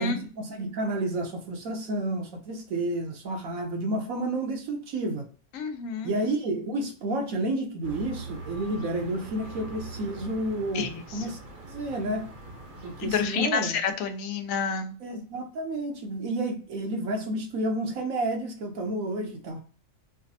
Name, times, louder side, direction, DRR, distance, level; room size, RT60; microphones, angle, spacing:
voice 1, 0.0-5.2 6.0-11.4 11.7-12.3 12.8-13.8 15.0-19.6, right 1 dB, 75° right, 1.2 m, -30 dB
voice 2, 5.5-6.1 10.7-11.2 13.0-15.0, left 6 dB, 75° left, 1.0 m, -29 dB
sound 1, 7.8-13.3, right 3 dB, 45° right, 0.8 m, -42 dB
4.9 x 2.0 x 2.6 m
omnidirectional pair, 1.5 m